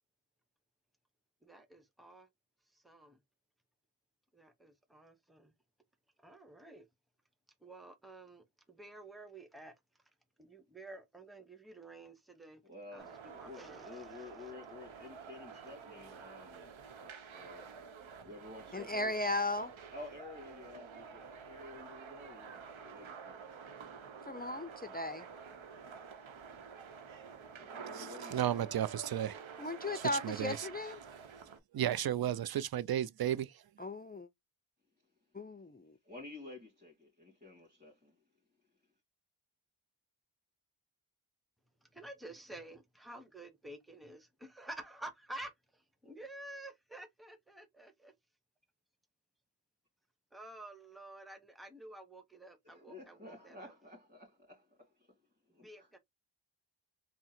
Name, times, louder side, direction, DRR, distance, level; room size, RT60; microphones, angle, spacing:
voice 1, 1.4-2.3 2.7-3.2 4.3-5.5 6.2-6.9 7.6-9.7 10.4-12.6 12.9-14.5 15.5-15.6 41.8-48.1 50.3-53.7 55.6-56.0, right 1 dB, ahead, 0.9 m, -51 dB
voice 2, 12.6-17.7 18.2-19.3 19.9-23.6 27.2-28.7 36.0-38.2 52.6-55.1 55.5-55.9, left 3 dB, 15° right, 2.0 m, -52 dB
sound 1, 13.0-31.6, right 6 dB, 90° right, 0.8 m, -49 dB
voice 3, 18.7-19.7 24.2-25.3 29.6-31.0 33.8-34.3 35.3-36.0, left 2 dB, 20° left, 0.4 m, -36 dB
voice 4, 28.3-29.4 30.0-30.6 31.7-33.5, right 11 dB, 55° right, 0.5 m, -33 dB
3.6 x 2.1 x 4.3 m
cardioid pair, 55°, 46 cm